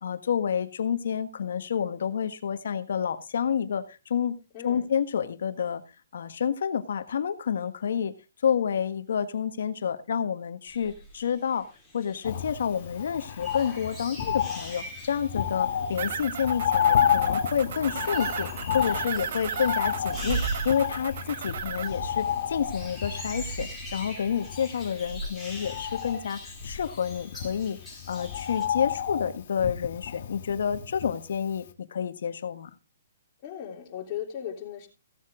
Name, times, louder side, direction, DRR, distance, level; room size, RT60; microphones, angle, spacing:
voice 1, 0.0-4.3 4.6-5.8 6.1-8.1 8.4-11.7 11.9-18.5 18.7-27.8 28.1-32.7, left 7 dB, 70° left, 11 dB, 1.4 m, -29 dB
voice 2, 4.5-4.9 33.4-34.9, left 9 dB, 30° left, -1 dB, 3.4 m, -37 dB
sound 1, 10.7-28.7, right 2 dB, 5° right, 4.3 m, -40 dB
Bird, 12.2-31.4 31.7-31.8, left 9 dB, 50° left, 1.6 m, -31 dB
sound 2, 15.9-21.9, right 8 dB, 55° right, 1.2 m, -35 dB
16.0 x 7.4 x 3.7 m, 0.30 s
hypercardioid pair, 155°, 0 cm